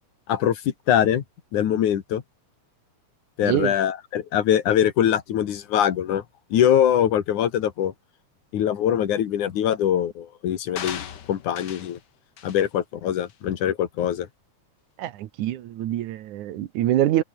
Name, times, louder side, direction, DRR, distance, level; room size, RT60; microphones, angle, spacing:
voice 1, 0.3-1.2 1.5-2.2 3.4-6.2 6.5-7.9 8.5-12.0 12.4-14.3, left 10 dB, 75° left, 3.2 m, -23 dB
voice 2, 3.4-3.7 15.0-17.2, right 13 dB, 75° right, 2.5 m, -25 dB
sound 1, 10.8-12.0 12.4-12.6 13.2-13.3, left 9 dB, 55° left, 1.3 m, -37 dB
omnidirectional pair, 3.5 m